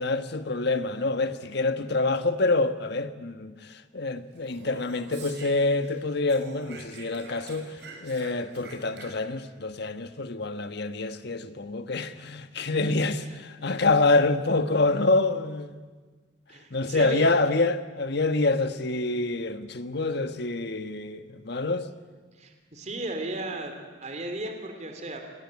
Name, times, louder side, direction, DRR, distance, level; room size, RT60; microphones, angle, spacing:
voice 1, 0.0-3.5 3.9-7.7 8.0-15.7 16.7-21.9, left 3 dB, 60° left, 1.4 m, -26 dB
Speech, 4.4-6.0 6.3-9.5, right 3 dB, 60° right, 5.9 m, -46 dB
voice 2, 12.7-13.3 16.5-17.3 22.3-25.2, right 2 dB, 40° right, 3.3 m, -36 dB
26.0 x 19.5 x 9.7 m
head